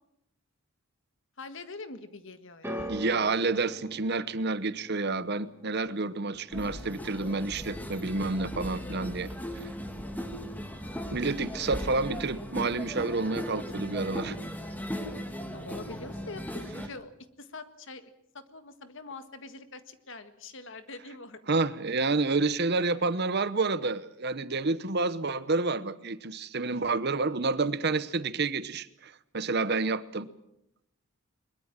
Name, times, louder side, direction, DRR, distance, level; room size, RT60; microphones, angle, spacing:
voice 1, 1.4-2.9 15.5-17.1 17.4-21.4, left 3 dB, 60° left, 10 dB, 1.7 m, -44 dB
sound 1, 2.6-8.9 9.2-9.8 10.6-10.7, right 1 dB, 10° right, 2.8 m, -44 dB
voice 2, 2.9-9.3 11.1-14.4 21.5-30.3, right 3 dB, 50° right, 15 dB, 0.9 m, -29 dB
sound 2, 6.5-16.9, equal, 10° left, 2.0 m, -38 dB
22.0 x 22.0 x 7.5 m, 0.80 s
head